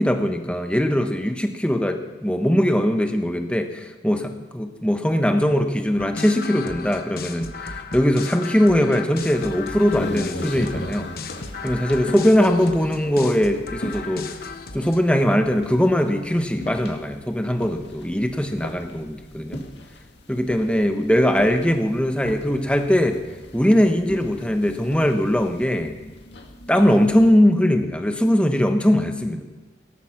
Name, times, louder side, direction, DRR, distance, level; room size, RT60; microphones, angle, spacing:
voice 1, 0.0-11.1 11.6-14.4 14.7-19.6 20.3-23.2 23.5-25.9 26.7-29.4, equal, 5° left, 5 dB, 1.1 m, -20 dB
sound 1, 6.0-15.0, left 4 dB, 55° left, 1.1 m, -35 dB
sound 2, 9.1-27.3, left 1 dB, 80° left, 1.9 m, -39 dB
18.0 x 12.0 x 6.0 m, 1.2 s
head